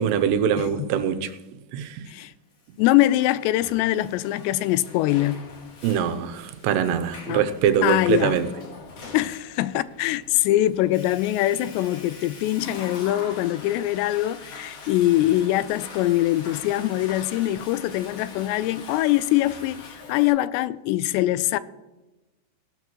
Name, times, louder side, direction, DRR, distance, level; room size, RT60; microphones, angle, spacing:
voice 1, 0.0-1.3 1.7-2.1 5.8-8.5, right 8 dB, 85° right, 2.9 m, -23 dB
voice 2, 2.8-5.4 7.3-7.4 7.8-8.4 9.1-21.6, left 15 dB, 90° left, 2.7 m, -23 dB
Water / Toilet flush, 2.8-20.3, left 4 dB, 55° left, 1.7 m, -43 dB
17.0 x 12.0 x 3.1 m
omnidirectional pair, 4.9 m